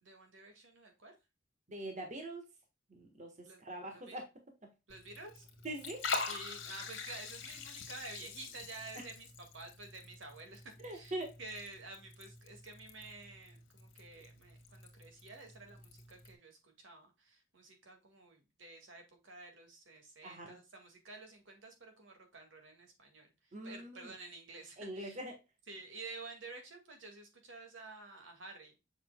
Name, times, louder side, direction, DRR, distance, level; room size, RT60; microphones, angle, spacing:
voice 1, 0.0-1.1 3.4-4.2 4.9-5.5 6.3-11.1 11.4-25.2 25.7-28.7, right 3 dB, 75° right, 4 dB, 2.0 m, -51 dB
voice 2, 1.7-2.4 2.9-4.3 4.6-4.7 5.6-6.1 8.9-9.0 10.8-11.4 20.2-20.6 23.5-24.1 24.8-25.4, right 1 dB, 40° right, 3 dB, 1.5 m, -43 dB
Liquid, 4.9-16.3, left 4 dB, 80° left, 1.7 m, -45 dB
7.2 x 5.8 x 2.2 m, 0.25 s
head